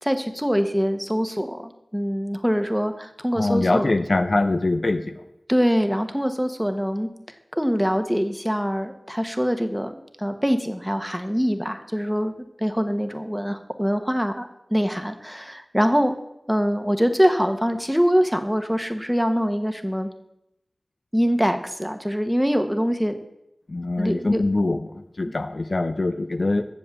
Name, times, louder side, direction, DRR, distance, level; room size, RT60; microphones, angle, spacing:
voice 1, 0.0-3.9 5.5-7.1 7.6-12.3 12.6-16.1 16.5-20.1 21.1-23.2 24.0-24.4, equal, 5° right, 7 dB, 1.1 m, -24 dB
voice 2, 3.3-5.2 23.7-26.7, left 2 dB, 65° left, 9 dB, 0.6 m, -23 dB
8.2 x 7.1 x 8.2 m, 0.84 s
wide cardioid pair, 50°, 0 cm